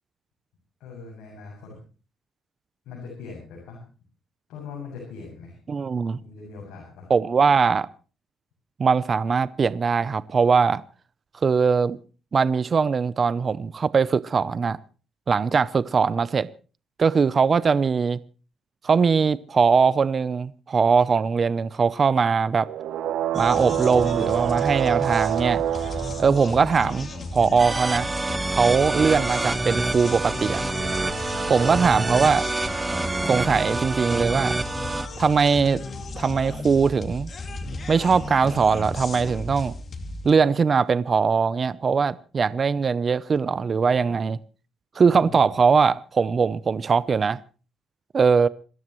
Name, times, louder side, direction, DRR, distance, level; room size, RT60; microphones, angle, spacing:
voice 1, 0.8-1.8 2.9-3.8 4.5-5.5 6.2-7.1 45.2-45.5, left 4 dB, 85° left, 7.4 m, -41 dB
voice 2, 5.7-6.2 7.1-7.9 8.8-10.8 11.4-12.0 12.3-14.8 15.3-16.5 17.0-18.2 18.8-22.7 23.3-25.6 26.2-28.1 28.5-30.6 31.5-32.4 33.3-34.6 35.2-35.8 36.2-37.3 37.9-39.7 40.2-44.4 45.0-47.4 48.1-48.5, right 5 dB, 40° right, 0.6 m, -21 dB
sound 1, 22.6-27.2 30.6-33.5, right 11 dB, 80° right, 1.0 m, -29 dB
sound 2, 23.3-40.3, left 2 dB, 45° left, 2.5 m, -35 dB
sound 3, 27.6-35.1, right 2 dB, 20° right, 1.3 m, -27 dB
27.0 x 13.5 x 3.1 m
cardioid pair, 90°, 0 cm